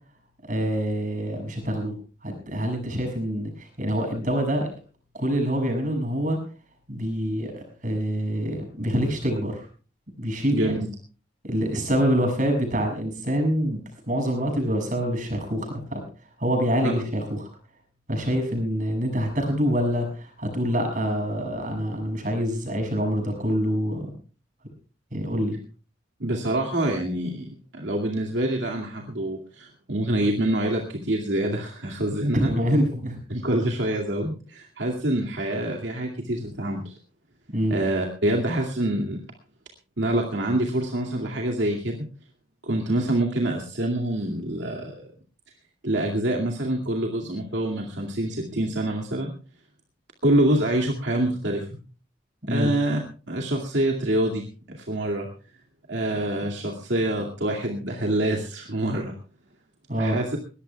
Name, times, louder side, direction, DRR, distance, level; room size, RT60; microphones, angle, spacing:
voice 1, 0.4-4.7 5.1-6.4 6.9-9.7 10.2-10.7 11.4-13.8 14.1-16.0 16.4-17.5 18.1-24.1 25.1-25.6 32.3-33.2 37.5-37.8 52.4-52.7 59.9-60.2, equal, 40° right, 3 dB, 6.6 m, -26 dB
voice 2, 10.5-10.9 26.2-32.5 33.3-36.9 37.7-39.2 40.0-42.0 42.6-45.1 45.8-49.3 50.2-51.7 52.5-53.0 53.3-55.3 55.9-59.1 60.0-60.4, right 1 dB, 70° right, 1 dB, 2.3 m, -26 dB
21.5 x 18.5 x 2.3 m, 0.37 s
head